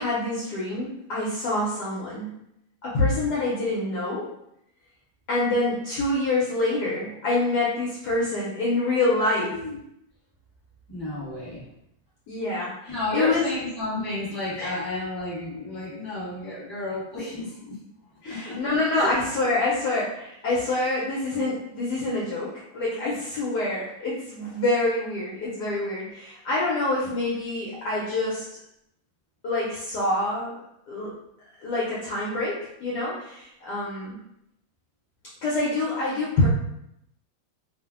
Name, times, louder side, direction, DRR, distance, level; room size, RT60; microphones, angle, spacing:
voice 1, 0.0-2.3 2.8-4.3 5.3-9.6 12.3-13.5 14.6-14.8 18.2-28.4 29.4-30.6 30.9-31.1 31.6-34.2 35.4-36.5, left 2 dB, 70° left, -6 dB, 1.1 m, -26 dB
voice 2, 10.9-11.6 12.9-17.8 18.2-18.6 18.9-19.1, left 2 dB, 15° left, -10 dB, 1.2 m, -31 dB
2.7 x 2.5 x 2.4 m, 0.78 s
omnidirectional pair, 2.0 m